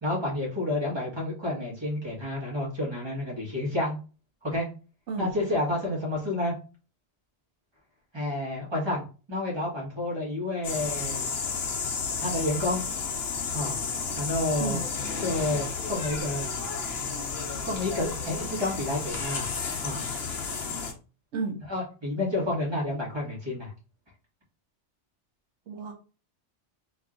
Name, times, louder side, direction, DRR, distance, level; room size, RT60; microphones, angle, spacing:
voice 1, 0.0-4.0 4.4-4.7 5.2-6.5 8.1-9.0 9.3-11.3 12.2-12.8 13.5-13.7 14.2-14.8 15.2-16.5 17.6-19.5 19.8-20.0 21.7-23.7, left 1 dB, 25° right, -3 dB, 1.6 m, -30 dB
sound 1, 10.6-20.9, left 5 dB, 60° left, 1.0 m, -32 dB
voice 2, 21.3-21.7 25.7-25.9, right 4 dB, 75° right, 2 dB, 1.1 m, -32 dB
3.1 x 3.0 x 3.8 m, 0.34 s
omnidirectional pair, 1.2 m